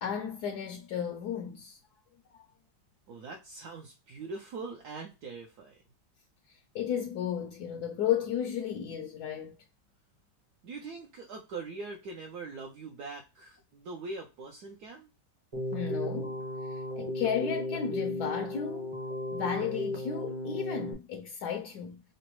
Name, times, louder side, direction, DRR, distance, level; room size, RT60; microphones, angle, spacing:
voice 1, 0.0-1.8 2.3-2.4 6.5-9.5 15.7-16.4 16.7-18.9 19.3-22.0, left 8 dB, 75° left, 1.1 m, -34 dB
voice 2, 3.1-5.8 10.6-15.1, right 3 dB, 70° right, 1.2 m, -42 dB
Keyboard (musical), 15.5-20.9, left 1 dB, 25° right, 0.6 m, -35 dB
5.8 x 2.1 x 3.0 m
omnidirectional pair, 1.9 m